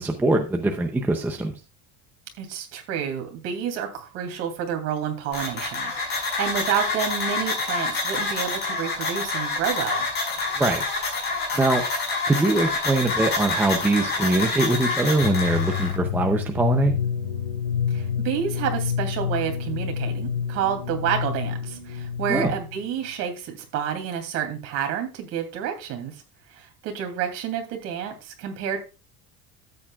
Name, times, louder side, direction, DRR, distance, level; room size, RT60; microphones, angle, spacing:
voice 1, 0.0-1.5 10.6-10.8 11.5-11.8 12.3-16.9 22.3-22.5, right 2 dB, 5° right, 4 dB, 0.6 m, -22 dB
voice 2, 2.4-10.1 17.9-26.2 26.5-28.8, right 8 dB, 45° right, 5 dB, 2.7 m, -29 dB
sound 1, 5.3-15.9, left 3 dB, 30° left, 5.2 m, -27 dB
sound 2, 15.2-22.9, left 8 dB, 75° left, 4.4 m, -28 dB
13.0 x 8.7 x 2.3 m, 0.29 s
cardioid pair, 175°, 35 cm